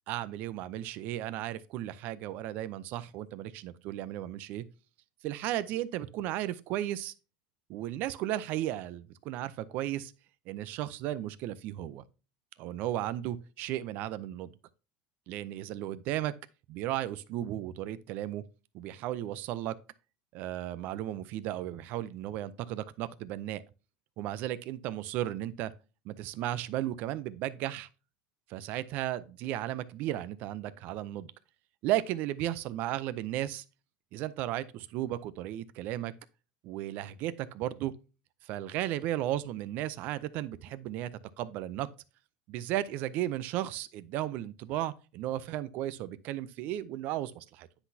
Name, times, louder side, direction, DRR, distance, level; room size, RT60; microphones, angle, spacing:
voice 1, 0.1-4.6 5.2-7.1 7.7-10.1 10.5-12.0 12.6-14.5 15.3-16.3 16.7-18.4 18.7-19.8 20.3-23.6 24.2-25.7 26.0-27.9 28.5-31.3 31.8-33.6 34.1-36.1 36.6-37.9 38.4-41.1 41.4-41.9 42.5-47.7, right 13 dB, 55° right, 0.5 m, -35 dB
9.6 x 4.0 x 2.7 m
supercardioid pair, 140°, 4 cm